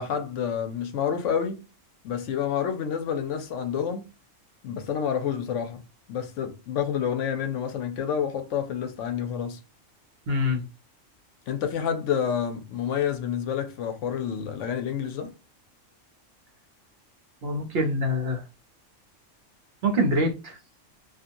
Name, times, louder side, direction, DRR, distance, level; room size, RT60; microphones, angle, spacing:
voice 1, 0.0-1.6 2.0-4.1 4.6-5.8 6.1-9.6 11.5-15.3, left 8 dB, 75° left, 0.9 m, -28 dB
voice 2, 10.3-10.6 17.4-18.4 19.8-20.6, equal, 55° right, 0.8 m, -25 dB
2.7 x 2.4 x 2.5 m
omnidirectional pair, 1.3 m